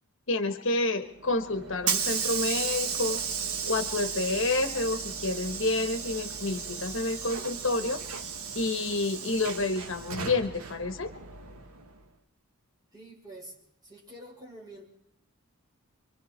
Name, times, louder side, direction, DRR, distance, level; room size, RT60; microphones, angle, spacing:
voice 1, 0.3-3.2 3.7-8.0 8.5-11.1, left 2 dB, 60° left, 9 dB, 1.2 m, -29 dB
Hiss / Sliding door, 1.1-12.0, right 6 dB, 85° right, 1.3 m, -34 dB
voice 2, 12.9-14.9, right 1 dB, 20° right, -2 dB, 5.3 m, -47 dB
27.0 x 24.0 x 4.4 m, 0.70 s
head